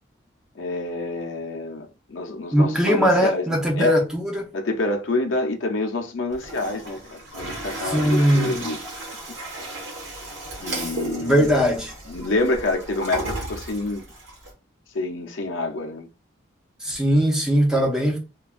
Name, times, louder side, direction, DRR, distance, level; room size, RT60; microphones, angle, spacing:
voice 1, 0.6-3.5 3.8-4.0 4.5-8.8 10.6-11.7 12.1-14.1 14.9-16.1 17.7-17.9, left 2 dB, 85° left, 0.6 m, -27 dB
voice 2, 2.5-4.5 7.8-8.7 11.2-11.9 16.8-18.2, equal, 5° right, 0.6 m, -20 dB
Toilet flush, 6.3-14.5, right 2 dB, 85° right, 1.1 m, -34 dB
3.2 x 2.2 x 2.4 m
head